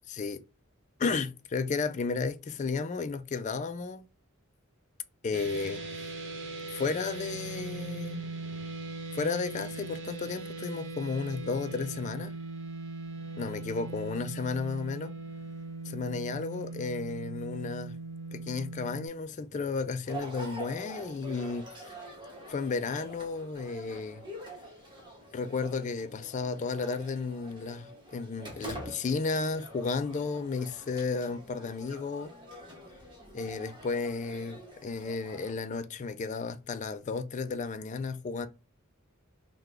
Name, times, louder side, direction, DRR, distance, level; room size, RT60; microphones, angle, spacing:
voice 1, 0.1-0.4 1.0-4.0 5.2-5.8 6.7-8.2 9.1-12.3 13.4-15.1 15.9-17.9 18.3-21.7 22.5-24.2 25.3-32.3 33.3-38.5, left 4 dB, 35° left, 0.3 m, -33 dB
sound 1, 5.3-19.1, right 3 dB, 60° right, 0.9 m, -40 dB
sound 2, 20.1-35.5, right 1 dB, 20° right, 0.9 m, -46 dB
3.7 x 2.2 x 3.1 m
head